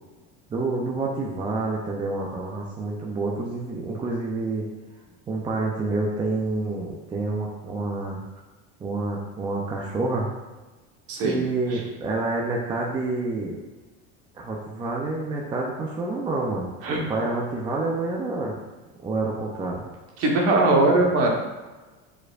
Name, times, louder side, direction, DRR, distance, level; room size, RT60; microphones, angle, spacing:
voice 1, 0.5-4.7 5.3-8.2 8.8-10.3 11.2-13.6 14.3-16.7 17.1-18.6 19.0-19.8, right 3 dB, 15° right, -1 dB, 0.4 m, -28 dB
voice 2, 20.2-21.3, right 2 dB, 50° right, 0 dB, 1.1 m, -20 dB
5.0 x 4.3 x 2.4 m, 1.2 s
cardioid pair, 145°, 31 cm